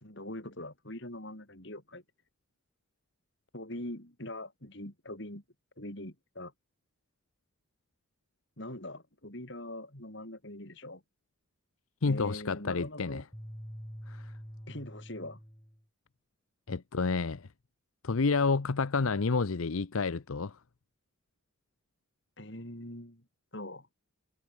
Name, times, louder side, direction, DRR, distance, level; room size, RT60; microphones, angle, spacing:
voice 1, 0.0-2.0 3.5-5.4 5.8-6.5 8.6-11.0 12.1-13.3 14.7-15.4 22.4-23.2 23.5-23.9, left 1 dB, 55° left, 4.2 m, -42 dB
voice 2, 12.0-13.2 14.1-14.2 16.7-17.5 18.0-20.5, left 4 dB, 75° left, 0.7 m, -29 dB
sound 1, 13.3-15.8, equal, 10° left, 5.6 m, -45 dB
head